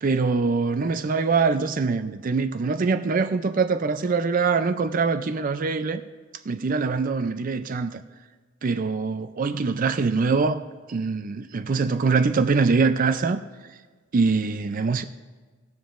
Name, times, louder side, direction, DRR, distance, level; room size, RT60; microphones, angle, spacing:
voice 1, 0.0-6.0 6.5-8.0 8.6-10.6 10.9-13.4 14.1-15.0, right 4 dB, 45° right, 0.4 m, -23 dB
18.5 x 7.3 x 2.5 m
head